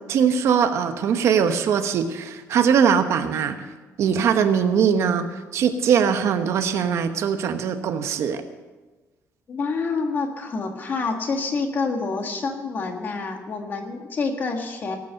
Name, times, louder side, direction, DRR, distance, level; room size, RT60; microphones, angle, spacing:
voice 1, 0.1-3.6 4.0-8.4, right 7 dB, 60° right, 8 dB, 1.0 m, -21 dB
voice 2, 9.5-15.0, left 4 dB, 35° left, 4 dB, 1.7 m, -27 dB
18.0 x 8.4 x 6.5 m, 1.2 s
cardioid pair, 175°, 6 cm